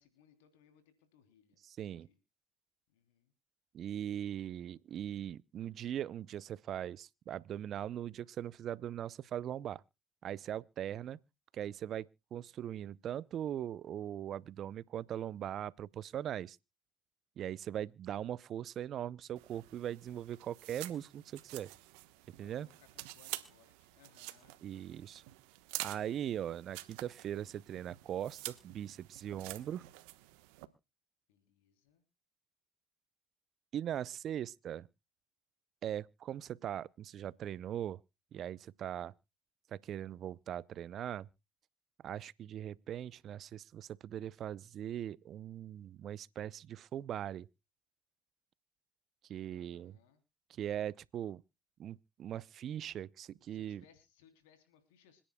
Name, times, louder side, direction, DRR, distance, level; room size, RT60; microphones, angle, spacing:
voice 1, 0.0-2.2 2.9-3.3 22.4-25.3 31.3-32.0 49.5-50.2 53.5-55.2, left 8 dB, 85° left, 3.2 m, -67 dB
voice 2, 1.6-2.1 3.7-9.8 10.2-11.2 11.5-16.6 17.4-21.7 22.3-22.7 24.6-25.2 25.8-29.8 33.7-34.9 35.8-38.0 38.3-39.1 39.7-41.3 42.0-47.5 49.3-50.0 50.5-51.4 51.8-53.8, right 10 dB, 50° right, 0.5 m, -40 dB
sound 1, 19.4-30.7, right 19 dB, 80° right, 1.1 m, -48 dB
26.0 x 10.0 x 2.2 m
supercardioid pair, 80°, 0 cm